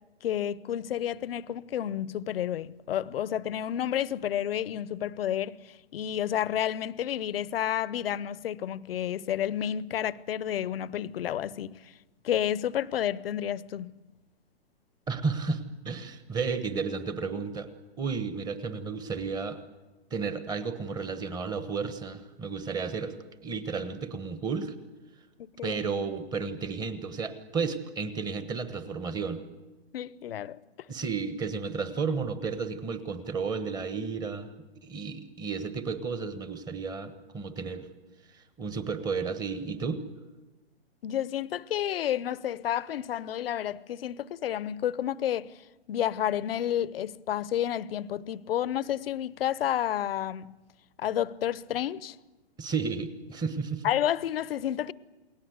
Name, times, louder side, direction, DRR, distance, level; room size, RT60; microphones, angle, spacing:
voice 1, 0.2-11.9 12.2-14.0 25.4-25.8 29.9-30.6 41.0-45.5 45.9-50.6 51.0-52.2 53.8-54.9, left 10 dB, 65° left, 0.9 m, -30 dB
voice 2, 15.1-17.7 18.0-19.6 20.1-23.2 23.4-24.7 25.6-29.4 30.9-34.5 34.8-37.9 38.3-40.0 52.6-53.9, right 5 dB, 10° right, 1.2 m, -32 dB
29.0 x 20.5 x 8.0 m
hypercardioid pair, 155°, 32 cm